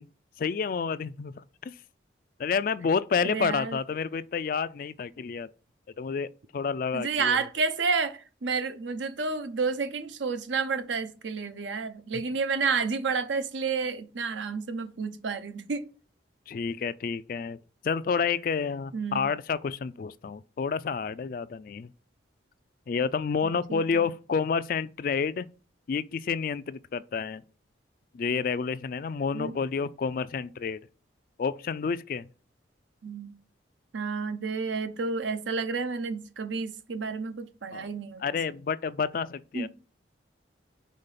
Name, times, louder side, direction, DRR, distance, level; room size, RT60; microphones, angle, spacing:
voice 1, 0.4-1.3 1.6-1.7 2.4-5.5 6.0-7.4 16.5-17.6 17.8-21.9 22.9-25.4 25.9-27.4 28.1-30.8 31.4-32.3 37.7-37.9 38.2-39.7, left 5 dB, 45° left, 0.3 m, -29 dB
voice 2, 3.2-3.8 6.9-15.9 18.9-19.3 23.4-24.1 29.3-29.5 33.0-33.3 33.9-38.4 39.5-39.7, right 4 dB, 75° right, 0.7 m, -30 dB
5.2 x 3.8 x 5.7 m
head